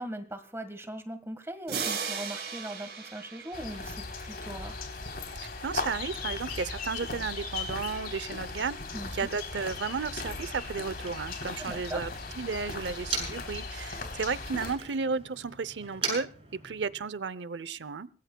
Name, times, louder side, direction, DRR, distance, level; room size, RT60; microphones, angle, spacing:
voice 1, 0.0-4.8 8.9-9.3 11.6-12.0 14.0-14.1, right 1 dB, 15° right, 9 dB, 1.6 m, -40 dB
sound 1, 1.7-4.4, right 6 dB, 65° right, 5.2 m, -36 dB
sound 2, 3.5-14.7, left 4 dB, 60° left, 3.5 m, -38 dB
voice 2, 5.4-8.8 9.1-12.1 12.4-18.1, right 5 dB, 85° right, 18 dB, 0.7 m, -33 dB
Motor vehicle (road), 9.1-13.6 13.9-17.2, right 4 dB, 35° right, 7.2 m, -41 dB
25.5 x 19.0 x 2.3 m, 0.38 s
head